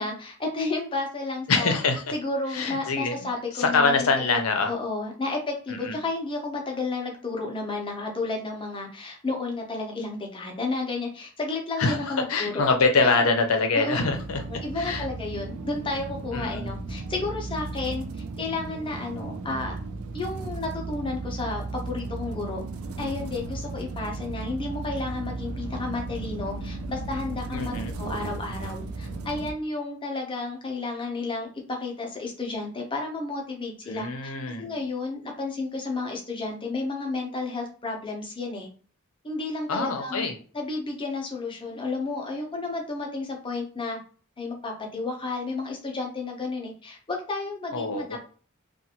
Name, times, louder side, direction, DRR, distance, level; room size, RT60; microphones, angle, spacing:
voice 1, 0.0-1.7 2.1-4.1 4.7-12.7 13.1-13.2 13.7-14.0 14.5-19.7 20.1-22.6 23.0-38.7 39.2-40.3 40.5-44.0 44.4-48.2, left 3 dB, 25° left, 1 dB, 0.7 m, -32 dB
voice 2, 1.5-2.0 2.5-3.2 3.5-4.7 5.7-6.0 11.8-14.4 14.8-15.1 16.3-16.7 27.5-28.0 33.9-34.7 39.7-40.3 47.7-48.2, left 4 dB, 80° left, 5 dB, 0.7 m, -24 dB
sound 1, 14.0-29.5, right 3 dB, 90° right, 0.4 m, -35 dB
2.5 x 2.4 x 2.8 m, 0.40 s
head